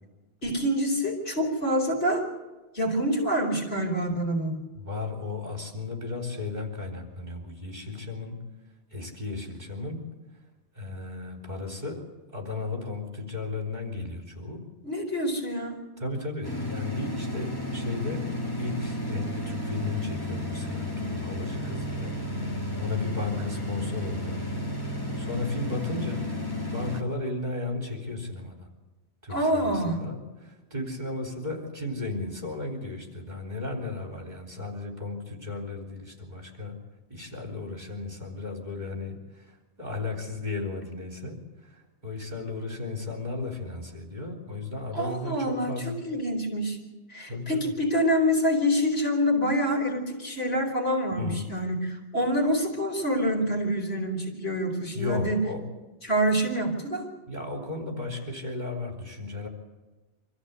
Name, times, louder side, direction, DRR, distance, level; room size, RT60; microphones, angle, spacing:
voice 1, 0.4-2.3 2.7-4.6 14.8-15.8 29.3-30.0 44.9-46.8 47.1-55.4 56.0-57.1, equal, 55° left, 1 dB, 4.7 m, -26 dB
voice 2, 4.8-8.4 8.9-10.0 10.7-12.0 12.3-14.6 16.0-18.3 18.6-24.4 25.2-26.3 26.7-28.7 29.2-36.8 37.1-45.9 47.3-47.7 51.1-51.5 54.9-55.6 57.3-59.5, left 3 dB, 40° right, 2 dB, 3.8 m, -35 dB
sound 1, 16.4-27.0, left 1 dB, 20° left, 2.3 m, -32 dB
25.0 x 14.5 x 8.3 m, 1.2 s
omnidirectional pair, 1.2 m